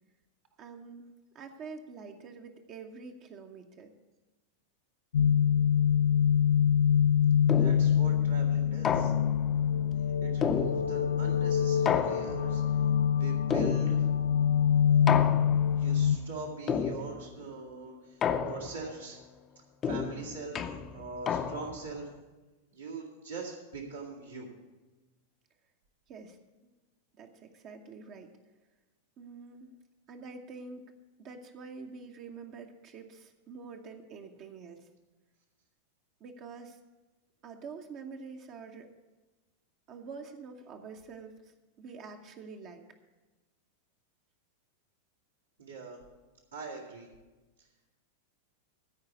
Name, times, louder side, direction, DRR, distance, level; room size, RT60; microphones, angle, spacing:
voice 1, 0.6-1.1 1.3-3.9 26.1-26.4 27.2-28.3 29.2-29.7 30.1-30.8 31.2-34.8 36.2-36.8 37.4-38.9 39.9-41.4 41.8-42.8, right 4 dB, 35° right, 4 dB, 0.9 m, -46 dB
sound 1, 5.1-16.2, left 8 dB, 65° left, 0.4 m, -25 dB
sound 2, 7.5-8.0 8.8-9.5 10.4-11.2 11.8-12.6 13.5-14.2 15.1-15.8 16.7-17.3 18.2-18.9 19.8-21.9, left 7 dB, 25° left, 0.7 m, -31 dB
voice 2, 7.5-9.1 10.2-12.8 13.1-14.1 14.8-15.4 15.7-19.2 19.8-22.1 22.7-24.5 45.6-46.0 46.5-47.1, right 4 dB, 75° right, -4 dB, 2.3 m, -42 dB
14.0 x 4.8 x 8.2 m, 1.2 s
figure-of-eight pair, 90°, 0 cm